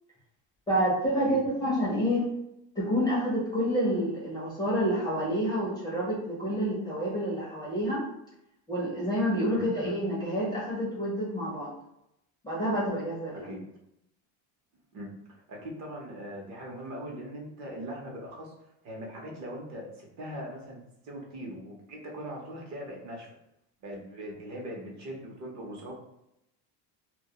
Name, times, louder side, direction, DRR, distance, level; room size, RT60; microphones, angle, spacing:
voice 1, 0.7-2.3 2.8-8.0 8.7-11.7 12.4-13.4, equal, 10° left, -8 dB, 0.4 m, -28 dB
voice 2, 15.5-18.5 18.8-20.8 21.0-23.3 23.8-25.9, equal, 45° right, -1 dB, 0.7 m, -40 dB
2.2 x 2.2 x 2.7 m, 0.82 s
cardioid pair, 150°, 41 cm